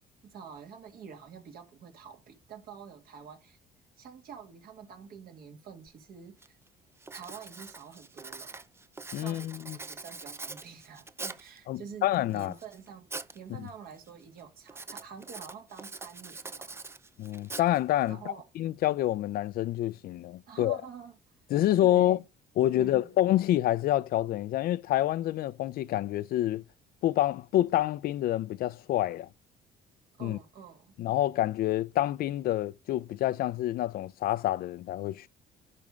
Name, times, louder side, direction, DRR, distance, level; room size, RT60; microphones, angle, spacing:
voice 1, 0.2-3.6 4.0-6.6 7.1-8.6 9.1-16.8 18.1-18.5 20.5-21.2 21.8-22.2 22.7-23.1 30.2-31.0, right 7 dB, 60° right, 2.0 m, -47 dB
Writing, 5.9-6.0 6.4-6.7 7.0-11.6 12.1-13.4 13.7-14.1 14.7-18.1, right 3 dB, 15° right, 0.5 m, -43 dB
voice 2, 9.1-9.8 11.7-12.5 13.6-13.7 17.2-18.2 18.6-20.8 21.5-22.2 22.6-26.6 27.0-29.3 30.2-30.4 31.0-35.3, left 13 dB, 65° left, 0.5 m, -27 dB
11.0 x 3.6 x 5.2 m
cardioid pair, 110°, 17 cm